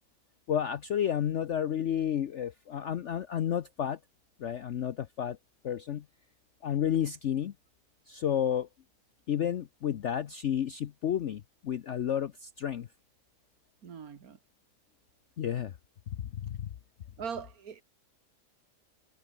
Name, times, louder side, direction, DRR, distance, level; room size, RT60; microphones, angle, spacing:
voice 1, 0.5-4.0 4.4-5.4 5.6-6.0 6.6-7.5 8.1-8.7 9.3-12.9 15.4-15.8 16.3-16.7, left 9 dB, 55° left, 0.9 m, -31 dB
voice 2, 13.8-14.4 17.2-17.8, right 7 dB, 60° right, 2.0 m, -40 dB
omnidirectional pair, 1.7 m